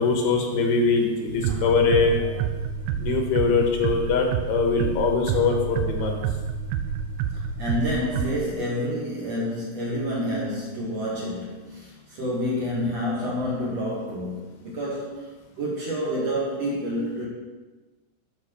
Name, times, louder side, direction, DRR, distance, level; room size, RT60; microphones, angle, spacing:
voice 1, 0.0-2.2 3.0-6.2, left 4 dB, 85° left, 2 dB, 3.5 m, -22 dB
sound 1, 1.4-8.4, right 7 dB, 80° right, 2.1 m, -29 dB
voice 2, 7.6-15.3 15.6-17.3, equal, 45° right, -6 dB, 2.8 m, -28 dB
11.5 x 5.0 x 6.6 m, 1.3 s
omnidirectional pair, 4.8 m